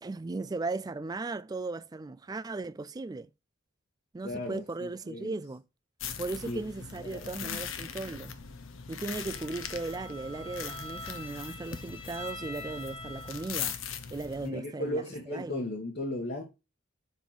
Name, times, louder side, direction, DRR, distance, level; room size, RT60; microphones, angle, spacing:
voice 1, 0.0-3.3 4.1-5.6 6.2-8.4 8.9-13.8 14.1-15.6, right 3 dB, 20° right, 0.3 m, -37 dB
voice 2, 4.2-5.4 6.5-6.6 7.0-7.6 14.4-16.4, left 1 dB, 50° left, 1.4 m, -36 dB
sound 1, 6.0-14.5, left 7 dB, 80° left, 1.0 m, -40 dB
Bowed string instrument, 9.1-13.8, left 1 dB, 25° left, 1.6 m, -45 dB
7.2 x 3.6 x 5.8 m
head